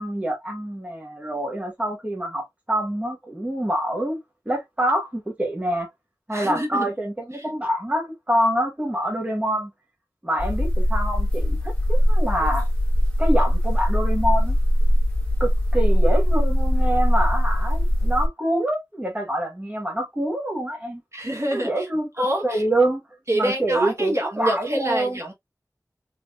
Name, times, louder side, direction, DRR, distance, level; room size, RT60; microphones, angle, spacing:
voice 1, 0.0-4.2 4.5-5.9 6.3-9.7 10.2-12.7 13.2-14.6 15.4-21.0 21.5-23.0 23.3-25.2, right 1 dB, 20° right, 1.1 m, -26 dB
voice 2, 6.3-6.9 7.3-7.5 21.1-21.9 22.2-22.6 23.3-25.3, right 1 dB, 45° right, 1.3 m, -26 dB
sound 1, 10.4-18.3, equal, 20° left, 1.5 m, -20 dB
3.7 x 2.8 x 2.3 m
wide cardioid pair, 55°, 7 cm